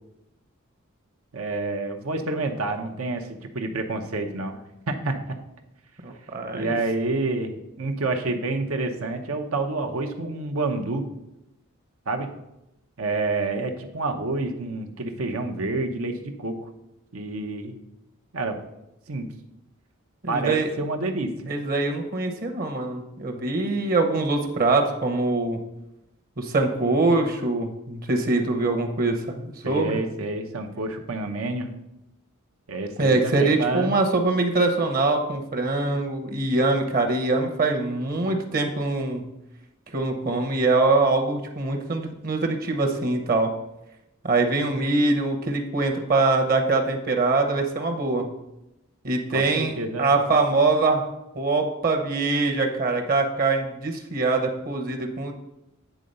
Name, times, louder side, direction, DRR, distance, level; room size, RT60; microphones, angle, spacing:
voice 1, 1.3-4.6 4.9-5.2 6.5-11.1 12.1-12.3 13.0-16.6 17.1-17.7 18.3-18.6 19.1-19.3 20.3-21.3 29.6-31.7 32.7-33.9 49.3-50.1, right 3 dB, 85° right, 4 dB, 0.8 m, -28 dB
voice 2, 6.0-6.8 20.2-20.7 21.5-25.6 26.4-30.0 33.0-39.3 39.9-43.5 44.2-48.3 49.0-49.7 50.0-51.1 51.3-55.3, right 3 dB, 45° right, 4 dB, 0.9 m, -23 dB
9.2 x 3.8 x 5.3 m, 0.89 s
head